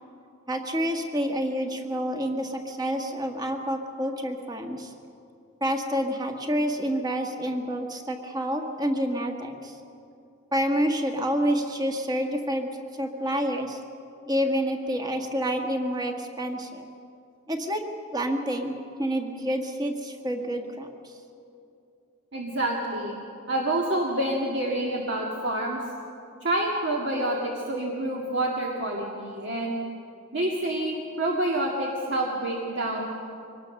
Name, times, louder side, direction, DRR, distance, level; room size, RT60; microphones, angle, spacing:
voice 1, 0.5-4.9 5.6-9.8 10.5-12.7 13.0-13.8 14.3-16.9 17.5-17.8 18.1-21.1, equal, 20° right, 4 dB, 1.5 m, -28 dB
voice 2, 22.3-23.2 23.5-25.8 26.4-29.8 30.3-33.0, right 1 dB, 55° right, -2 dB, 2.1 m, -28 dB
24.0 x 19.0 x 6.5 m, 2.7 s
head